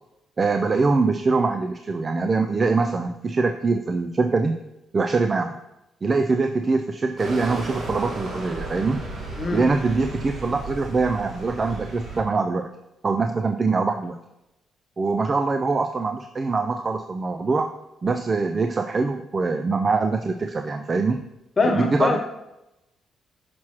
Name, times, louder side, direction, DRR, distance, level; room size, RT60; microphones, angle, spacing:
voice 1, 0.4-4.5 4.9-5.6 6.0-9.0 9.5-12.7 13.0-14.2 15.0-17.7 18.0-21.2 21.6-22.2, right 4 dB, 35° right, 6 dB, 0.4 m, -23 dB
sound 1, 7.2-12.2, right 2 dB, 50° right, 1.4 m, -34 dB
voice 2, 9.4-9.7 21.6-22.2, left 4 dB, 35° left, 3 dB, 1.0 m, -22 dB
6.1 x 5.9 x 3.0 m, 0.92 s
cardioid pair, 90°, 0 cm